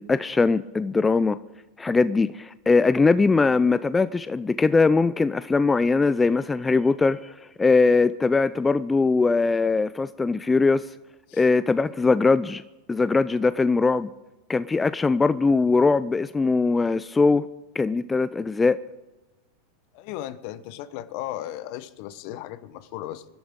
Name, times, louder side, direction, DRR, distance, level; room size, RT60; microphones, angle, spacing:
voice 1, 0.0-1.4 1.8-10.9 11.3-12.6 12.9-14.1 14.5-17.5 17.7-18.8, left 4 dB, 15° left, 0.4 m, -21 dB
voice 2, 19.9-23.2, left 13 dB, 55° left, 1.0 m, -36 dB
24.0 x 12.0 x 3.7 m
figure-of-eight pair, 90°, 0 cm